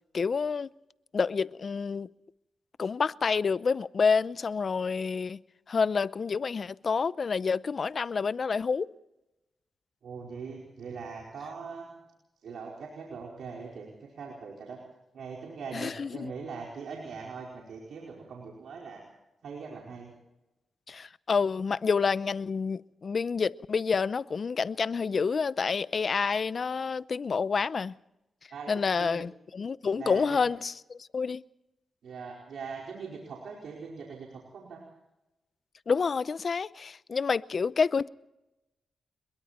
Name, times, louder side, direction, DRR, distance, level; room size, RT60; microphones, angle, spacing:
voice 1, 0.1-0.7 1.1-2.1 2.8-5.4 5.7-8.9 15.7-16.3 20.9-27.9 28.7-31.4 35.9-38.1, left 5 dB, 50° left, 0.7 m, -28 dB
voice 2, 10.0-11.9 12.4-14.8 15.1-19.0 19.4-20.1 28.5-29.2 29.9-30.4 32.0-34.3 34.5-34.8, right 5 dB, 75° right, 4.8 m, -41 dB
26.5 x 22.5 x 4.4 m
cardioid pair, 70°, 0 cm